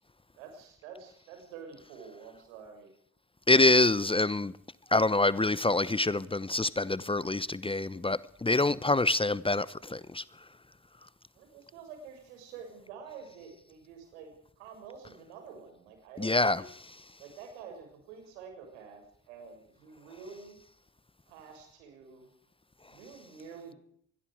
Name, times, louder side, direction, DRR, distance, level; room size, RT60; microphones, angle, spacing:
voice 1, 0.4-2.9 11.3-16.7 17.2-20.6 21.3-22.3 22.8-23.8, right 6 dB, 85° right, 6.9 m, -48 dB
voice 2, 3.5-4.5 4.9-10.2 16.2-16.6, left 2 dB, 15° left, 1.0 m, -26 dB
25.5 x 21.0 x 5.0 m
hypercardioid pair, 50°, 34 cm